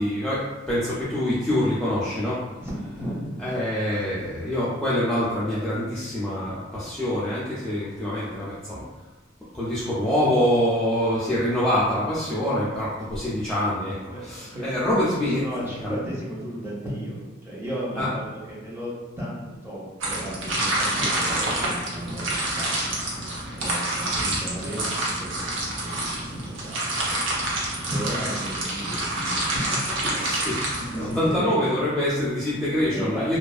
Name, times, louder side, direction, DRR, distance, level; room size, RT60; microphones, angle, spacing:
voice 1, 0.0-2.4 3.4-8.8 9.5-15.4 15.8-16.0 18.0-18.1 21.0-21.3 30.3-33.4, left 1 dB, 5° left, -10 dB, 0.4 m, -25 dB
voice 2, 2.6-4.1 11.3-11.4 14.1-14.2 14.5-14.6 15.3-22.9 23.5-25.5 25.8-27.2 27.9-31.8 32.9-33.4, equal, 15° right, -7 dB, 0.7 m, -34 dB
sound 1, 20.0-31.4, right 1 dB, 90° right, 0.7 m, -28 dB
2.5 x 2.3 x 2.3 m, 1.2 s
head